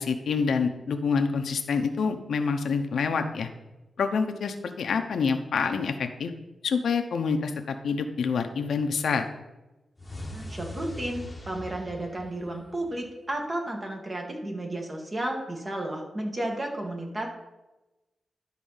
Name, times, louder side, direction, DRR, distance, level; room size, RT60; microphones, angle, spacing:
voice 1, 0.0-3.5 4.0-6.3 6.6-9.2, left 5 dB, 80° left, 6 dB, 0.9 m, -27 dB
sound 1, 10.0-13.1, left 1 dB, 20° left, 1.2 m, -41 dB
voice 2, 10.3-17.3, right 1 dB, 30° right, 1 dB, 1.9 m, -33 dB
12.0 x 4.1 x 5.7 m, 1.0 s
cardioid pair, 85°, 0 cm